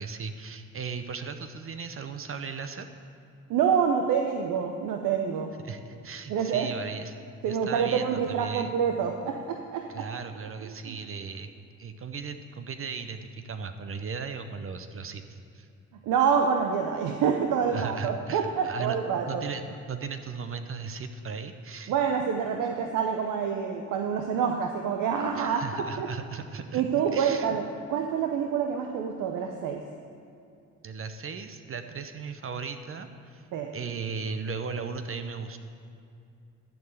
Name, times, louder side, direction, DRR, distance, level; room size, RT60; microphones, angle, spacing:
voice 1, 0.0-2.9 5.6-7.1 7.5-8.7 9.9-11.5 11.8-15.7 17.7-19.0 19.2-21.9 25.3-27.6 30.8-33.5 33.7-35.6, right 5 dB, 40° right, 8 dB, 0.7 m, -37 dB
voice 2, 3.5-5.5 6.3-6.7 7.4-10.0 10.6-11.0 16.0-19.4 21.9-26.1 26.7-27.6 27.9-29.8 33.5-33.7, right 7 dB, 75° right, 3 dB, 0.7 m, -27 dB
11.5 x 4.7 x 7.8 m, 2.6 s
supercardioid pair, 65°, 32 cm